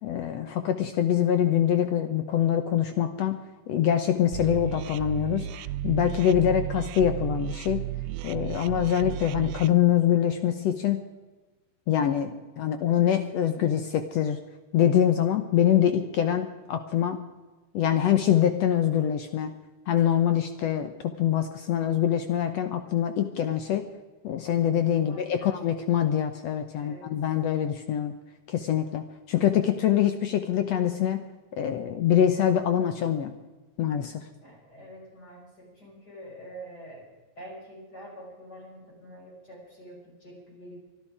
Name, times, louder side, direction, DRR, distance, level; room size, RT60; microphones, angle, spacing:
voice 1, 0.0-3.4 3.7-7.9 8.2-11.0 11.9-14.4 14.7-17.2 17.7-19.5 19.9-23.8 24.2-28.1 28.5-31.2 31.6-33.3 33.8-34.3, left 10 dB, 70° left, 9 dB, 1.7 m, -24 dB
sound 1, 4.3-9.7, right 12 dB, 85° right, 1.6 m, -34 dB
voice 2, 24.9-25.5 26.7-27.1 34.4-37.1 37.4-40.7, right 1 dB, 30° left, -3 dB, 6.2 m, -46 dB
24.0 x 11.5 x 4.9 m, 1.2 s
omnidirectional pair, 3.8 m